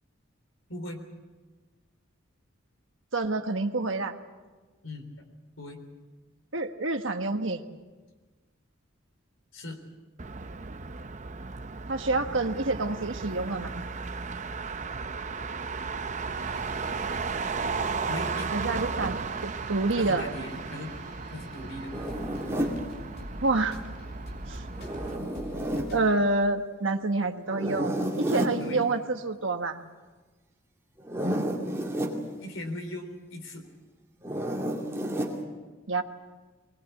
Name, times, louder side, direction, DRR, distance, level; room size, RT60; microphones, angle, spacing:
voice 1, 0.7-1.0 4.8-5.1 5.6-5.8 9.5-9.8 18.1-18.5 19.9-21.0 21.3-21.9 28.6-28.8 32.4-33.7, left 1 dB, 75° left, 5 dB, 4.0 m, -38 dB
voice 2, 3.1-4.1 6.5-7.7 11.9-13.7 18.5-20.2 23.4-23.8 24.5-24.6 25.9-29.8 35.9-36.0, right 3 dB, 65° right, 6 dB, 1.6 m, -28 dB
Motor vehicle (road), 10.2-25.2, right 4 dB, 35° right, 0.7 m, -35 dB
sound 1, 16.4-26.1, left 1 dB, 50° left, 3.4 m, -47 dB
Zipper (clothing), 21.9-22.8 24.7-25.9 27.5-28.6 31.0-32.2 34.2-35.4, equal, 10° right, 2.6 m, -30 dB
22.0 x 20.5 x 8.5 m, 1.3 s
head